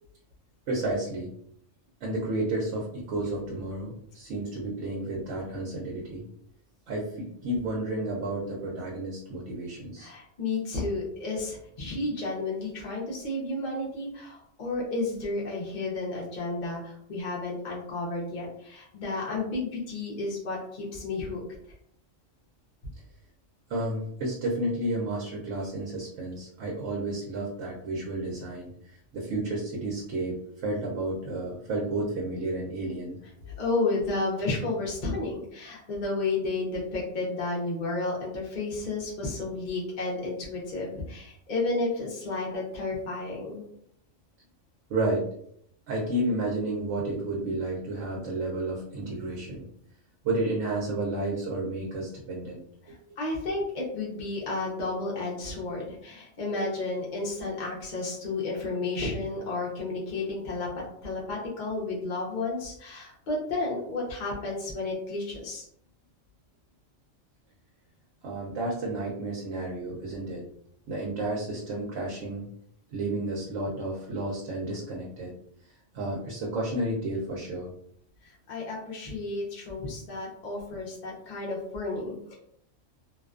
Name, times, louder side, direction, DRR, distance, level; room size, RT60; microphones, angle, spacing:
voice 1, 0.7-1.3 2.0-6.2 6.9-10.1 23.7-33.2 33.4-33.5 44.9-45.3 45.9-49.6 50.2-53.0 68.2-70.4 70.9-72.5 72.9-75.3 75.9-77.7, right 2 dB, 75° right, -3 dB, 0.9 m, -31 dB
voice 2, 10.0-21.4 33.6-43.6 52.8-65.6 78.5-82.3, left 3 dB, 50° left, -4 dB, 0.7 m, -32 dB
2.5 x 2.2 x 2.4 m, 0.70 s
omnidirectional pair, 1.3 m